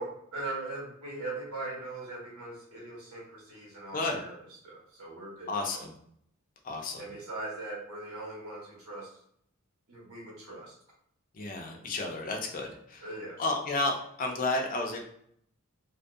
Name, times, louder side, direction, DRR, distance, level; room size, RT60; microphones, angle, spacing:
voice 1, 0.0-4.3 4.6-5.9 7.0-9.1 9.9-10.7 13.0-13.4, right 2 dB, 90° right, -3 dB, 1.1 m, -40 dB
voice 2, 5.5-5.9 6.6-7.0 11.4-13.0 13.4-15.0, left 2 dB, 40° left, 1 dB, 0.4 m, -32 dB
2.3 x 2.0 x 2.6 m, 0.69 s
head